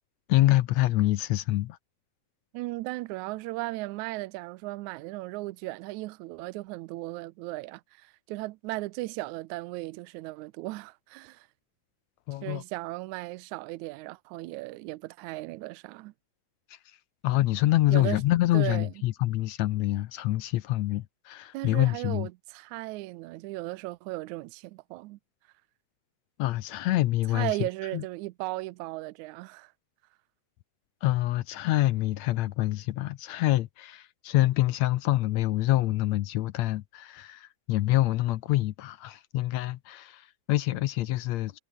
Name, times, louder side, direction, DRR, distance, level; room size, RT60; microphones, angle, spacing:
voice 1, 0.3-1.8 12.3-12.6 16.7-16.8 17.2-22.3 26.4-27.5 27.9-28.0 31.0-41.6, left 16 dB, 70° left, 1.8 m, -26 dB
voice 2, 2.5-11.5 12.4-16.1 17.9-18.2 18.5-18.9 21.5-25.2 27.3-29.7, right 20 dB, 80° right, 1.9 m, -36 dB
omnidirectional pair, 3.5 m